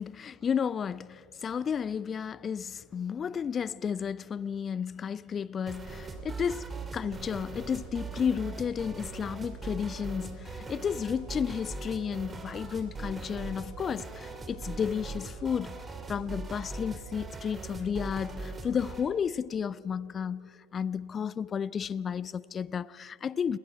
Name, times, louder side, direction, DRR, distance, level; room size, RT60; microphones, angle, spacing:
voice 1, 0.0-15.8 16.1-23.6, left 7 dB, 30° left, 0.4 m, -32 dB
sound 1, 5.7-19.1, right 3 dB, 20° right, 2.4 m, -40 dB
28.5 x 20.0 x 4.7 m
figure-of-eight pair, 75°, 0 cm